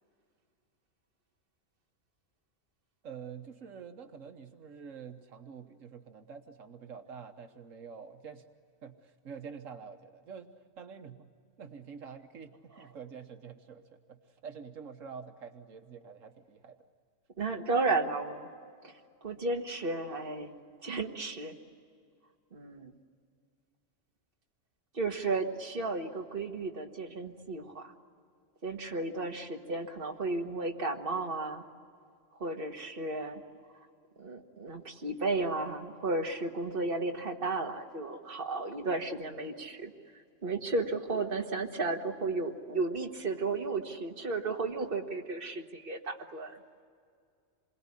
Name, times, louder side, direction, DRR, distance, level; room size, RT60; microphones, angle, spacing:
voice 1, 3.0-8.4 8.8-10.5 10.8-11.3 11.6-13.8 14.1-16.8, right 6 dB, 80° right, 6 dB, 1.6 m, -47 dB
voice 2, 17.4-18.5 18.8-18.9 19.2-20.6 20.8-21.5 22.5-22.9 24.9-27.9 28.6-31.7 32.4-33.4 34.2-39.9 40.4-46.6, right 3 dB, 45° right, 3 dB, 1.9 m, -33 dB
27.5 x 22.0 x 9.9 m, 2.2 s
omnidirectional pair, 1.3 m